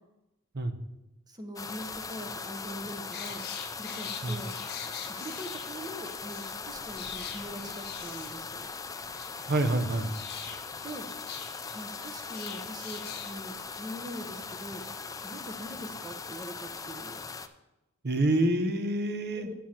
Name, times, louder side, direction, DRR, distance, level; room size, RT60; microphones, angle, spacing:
voice 1, 1.3-3.4 3.7-4.5 5.1-8.7 10.8-11.1 11.7-14.8 15.2-17.2 19.3-19.5, right 1 dB, 20° right, 5 dB, 0.9 m, -42 dB
sound 1, 1.6-17.5, left 5 dB, 15° left, 0.4 m, -40 dB
sound 2, 3.1-6.5 7.0-8.7 9.0-13.3 13.6-13.8, left 8 dB, 50° left, 0.9 m, -44 dB
voice 2, 9.5-10.1 18.0-19.5, right 1 dB, 50° right, 9 dB, 0.8 m, -27 dB
9.1 x 4.7 x 7.2 m, 0.96 s
head